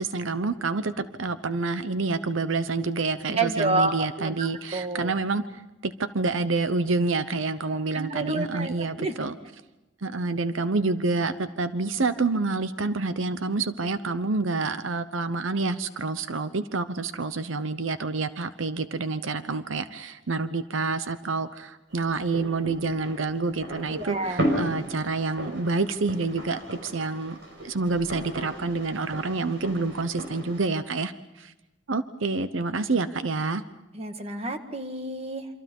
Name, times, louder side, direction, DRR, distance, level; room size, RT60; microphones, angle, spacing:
voice 1, 0.0-9.4 10.0-31.5 31.9-33.6, right 3 dB, 85° right, 12 dB, 0.9 m, -28 dB
voice 2, 3.3-5.1 7.9-9.3 23.9-24.5 33.9-35.5, right 2 dB, 30° right, 6 dB, 1.8 m, -29 dB
sound 1, 21.9-30.7, right 1 dB, 65° right, 5.8 m, -35 dB
28.0 x 25.5 x 5.4 m, 0.98 s
head